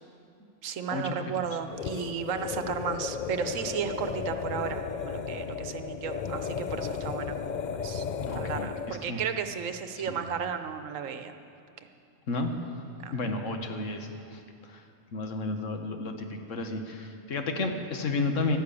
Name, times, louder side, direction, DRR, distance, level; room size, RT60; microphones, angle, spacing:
voice 1, 0.6-7.4 7.8-8.0 8.3-11.3 13.0-13.1, right 7 dB, 85° right, 8 dB, 1.2 m, -34 dB
sound 1, 1.7-9.1, left 6 dB, 60° left, 0.5 m, -34 dB
voice 2, 8.3-9.2 10.1-10.2 12.3-12.5 13.1-14.8 15.1-18.6, left 3 dB, 75° left, 5 dB, 1.5 m, -32 dB
12.0 x 11.5 x 8.5 m, 2.5 s
omnidirectional pair, 1.3 m